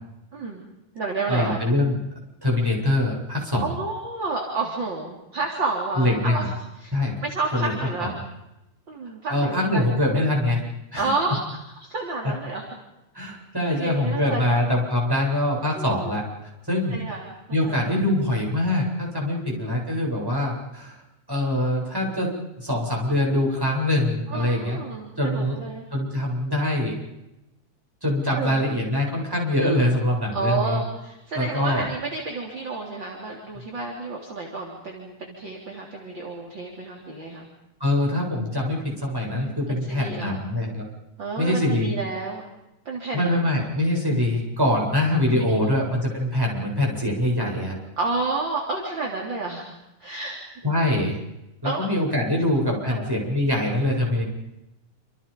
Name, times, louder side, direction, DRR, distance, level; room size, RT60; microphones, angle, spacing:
voice 1, 0.3-0.6 0.9-1.6 3.6-6.4 6.8-6.9 7.2-8.2 8.9-10.0 11.0-11.4 11.8-12.6 13.7-14.6 15.8-16.1 16.9-17.3 17.6-17.8 19.3-19.8 24.3-25.8 28.3-28.6 30.3-37.5 39.3-40.4 41.2-42.4 42.9-43.5 45.3-45.7 48.0-49.7 50.0-50.4 51.6-51.9 52.3-52.4 52.9-53.1, right 3 dB, 35° right, -1 dB, 4.0 m, -30 dB
voice 2, 1.3-2.0 2.4-3.7 6.0-6.5 6.9-7.2 7.5-7.7 8.0-8.1 9.3-10.6 10.9-11.1 13.1-16.2 16.7-17.0 17.5-21.0 21.3-22.3 22.6-24.8 25.2-25.6 25.9-26.9 28.0-30.8 31.3-31.8 37.8-40.9 41.4-41.9 43.1-47.8 50.6-51.2 51.6-54.2, left 1 dB, 5° right, -2 dB, 7.9 m, -23 dB
28.0 x 27.5 x 5.4 m, 0.92 s
omnidirectional pair, 3.6 m